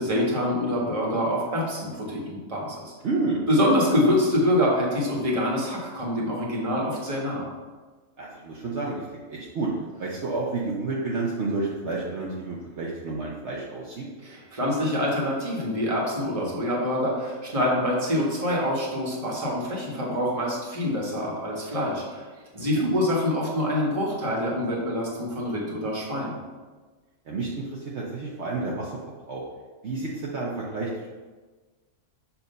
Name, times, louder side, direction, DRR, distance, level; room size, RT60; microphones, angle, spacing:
voice 1, 0.0-2.8 3.5-7.5 14.2-22.2 22.5-26.4, left 1 dB, 25° right, -3 dB, 1.3 m, -25 dB
voice 2, 3.0-3.4 8.2-9.7 10.0-14.1 22.6-22.9 27.3-29.0 29.3-29.4 29.8-31.1, right 3 dB, 60° right, -4 dB, 1.0 m, -30 dB
7.1 x 2.7 x 5.3 m, 1.3 s
omnidirectional pair, 1.4 m